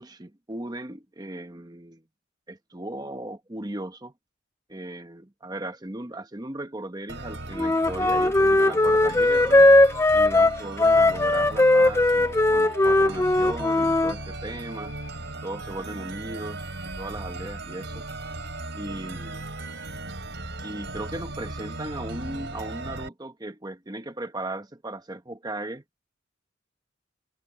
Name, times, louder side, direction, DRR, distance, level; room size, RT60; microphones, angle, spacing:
voice 1, 0.0-2.0 2.5-4.1 4.7-9.7 10.1-14.9 15.4-16.6 17.0-18.1 18.7-19.5 20.6-25.8, right 1 dB, 20° right, 1.0 m, -37 dB
sound 1, 7.1-23.1, right 2 dB, 60° right, 4.7 m, -37 dB
Wind instrument woodwind instrument, 7.6-14.1, left 2 dB, 15° left, 0.4 m, -19 dB
head